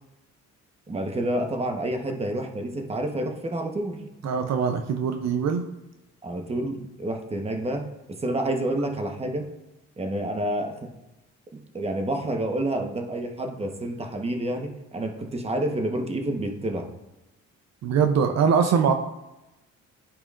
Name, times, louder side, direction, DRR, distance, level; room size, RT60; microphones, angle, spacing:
voice 1, 0.9-4.3 6.2-9.5 10.0-10.9 11.5-16.9, right 1 dB, 20° right, 4 dB, 1.0 m, -29 dB
voice 2, 4.2-5.6 17.8-18.9, right 6 dB, 60° right, 6 dB, 0.6 m, -22 dB
11.5 x 4.9 x 2.5 m, 1.0 s
cardioid pair, 90°, 30 cm